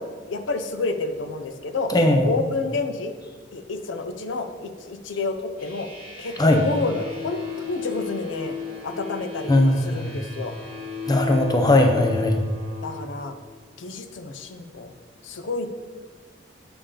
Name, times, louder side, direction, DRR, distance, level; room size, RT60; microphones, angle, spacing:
voice 1, 0.0-1.9 2.2-3.1 3.5-5.9 6.2-8.5 8.8-9.5 9.8-10.5 12.8-13.3 13.8-14.9 15.2-15.7, left 3 dB, 80° left, 8 dB, 0.6 m, -29 dB
voice 2, 1.9-2.3 6.4-6.6 9.5-10.3 11.1-12.4, left 1 dB, 20° left, 4 dB, 0.6 m, -19 dB
sound 1, 5.6-13.0, left 6 dB, 50° left, 2.1 m, -35 dB
7.0 x 6.9 x 3.7 m, 1.4 s
head